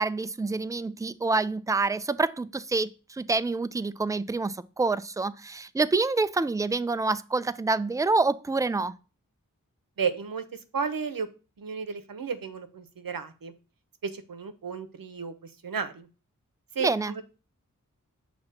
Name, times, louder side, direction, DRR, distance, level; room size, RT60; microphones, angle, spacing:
voice 1, 0.0-8.9 16.8-17.2, right 3 dB, 10° right, 0.3 m, -27 dB
voice 2, 10.0-11.3 11.6-13.5 14.0-16.1 16.7-17.2, right 6 dB, 85° right, 0.8 m, -33 dB
6.4 x 2.9 x 5.6 m
wide cardioid pair, 40°, 33 cm